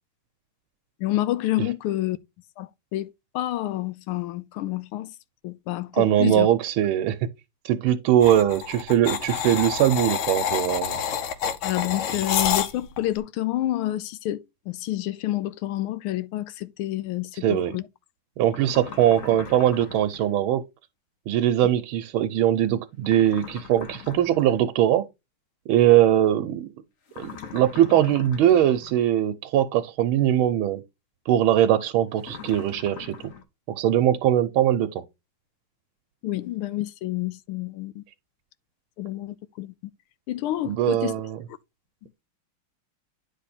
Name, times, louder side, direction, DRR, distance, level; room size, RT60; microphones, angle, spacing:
voice 1, 1.0-2.2 2.6-5.1 5.4-6.5 11.6-17.8 36.2-38.0 39.0-39.7 40.3-41.2, left 15 dB, 85° left, 1.5 m, -29 dB
voice 2, 6.0-7.2 7.6-11.0 17.4-17.7 18.4-20.6 21.3-25.1 25.7-26.7 27.2-30.8 31.3-33.2 33.7-35.0 40.7-41.4, right 11 dB, 80° right, 1.4 m, -21 dB
sound 1, 8.2-13.0, left 8 dB, 70° left, 1.6 m, -27 dB
sound 2, 18.5-20.3 23.0-24.7 27.1-29.1 32.2-33.4, left 7 dB, 55° left, 0.9 m, -41 dB
9.8 x 3.4 x 4.1 m
omnidirectional pair, 2.3 m